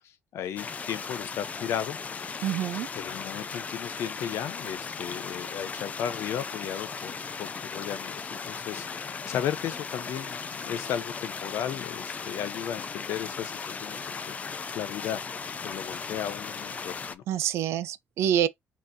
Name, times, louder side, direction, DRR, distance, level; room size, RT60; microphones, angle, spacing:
voice 1, 0.3-2.0 2.9-7.1 7.4-15.2 15.6-17.2, left 9 dB, 75° left, 0.6 m, -35 dB
sound 1, 0.6-17.1, left 5 dB, 35° left, 0.4 m, -37 dB
voice 2, 2.4-2.9 17.3-18.5, right 10 dB, 80° right, 0.5 m, -26 dB
4.3 x 3.0 x 2.6 m
cardioid pair, 110°, 5 cm